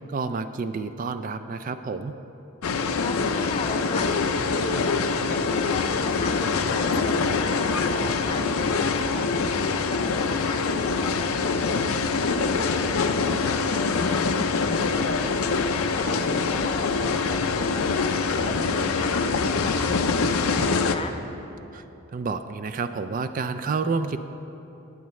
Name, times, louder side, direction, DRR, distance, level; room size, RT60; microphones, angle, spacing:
voice 1, 0.1-2.2 21.7-21.8 22.1-24.2, right 4 dB, 40° right, 10 dB, 0.3 m, -29 dB
sound 1, 2.6-21.0, left 4 dB, 80° left, 0.6 m, -24 dB
voice 2, 3.0-6.3 6.7-8.4 8.8-10.7 11.0-11.8 12.1-13.6 13.9-15.3 15.8-18.2 18.4-19.2 19.6-21.2, left 2 dB, 25° left, 6 dB, 0.5 m, -38 dB
19.5 x 8.1 x 3.2 m, 2.9 s
head